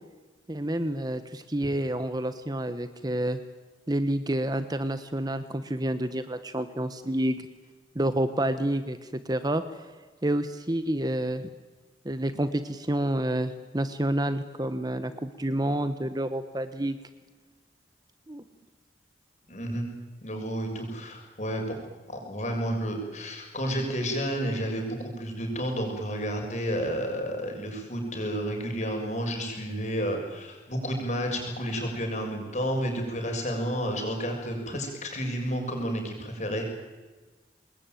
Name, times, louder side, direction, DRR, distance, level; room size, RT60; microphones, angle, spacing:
voice 1, 0.5-3.4 3.9-7.4 7.9-9.6 10.2-11.4 12.0-17.0 18.3-18.4, right 1 dB, 25° right, 10 dB, 1.1 m, -29 dB
voice 2, 19.5-19.9 20.2-21.8 22.1-36.6, equal, 40° left, 2 dB, 6.8 m, -31 dB
26.0 x 21.0 x 9.3 m, 1.3 s
head